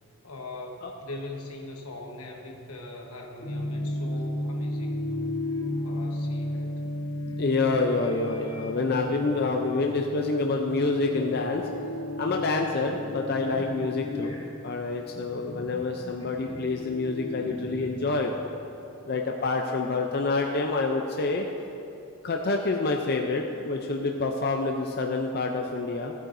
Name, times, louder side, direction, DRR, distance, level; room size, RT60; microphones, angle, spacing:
voice 1, 0.2-5.3 5.8-6.7, left 2 dB, 85° left, 1 dB, 1.1 m, -41 dB
sound 1, 3.4-18.5, left 1 dB, 30° left, 2.2 m, -34 dB
voice 2, 7.4-11.7 12.2-14.4 14.6-18.3 19.0-21.4 22.2-26.1, left 3 dB, 45° left, 2 dB, 0.5 m, -27 dB
15.0 x 8.7 x 2.6 m, 2.8 s
head